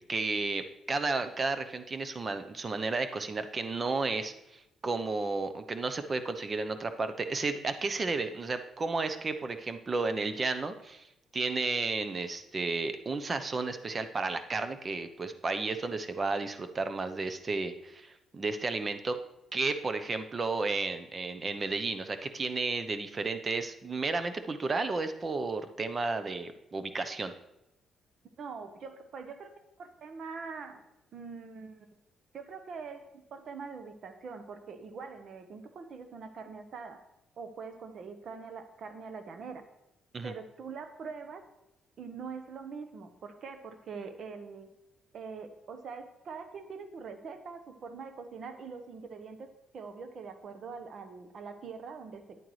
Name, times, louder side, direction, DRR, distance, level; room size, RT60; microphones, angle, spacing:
voice 1, 0.1-11.1 11.3-19.2 19.5-27.3 40.1-40.3, right 3 dB, 35° right, 9 dB, 0.8 m, -32 dB
voice 2, 28.4-30.8 31.1-31.9 32.3-37.0 37.4-39.6 40.2-41.4 42.0-44.7 45.1-52.4, right 5 dB, 60° right, 8 dB, 1.1 m, -43 dB
10.0 x 8.9 x 3.2 m, 0.90 s
cardioid pair, 90°, 0 cm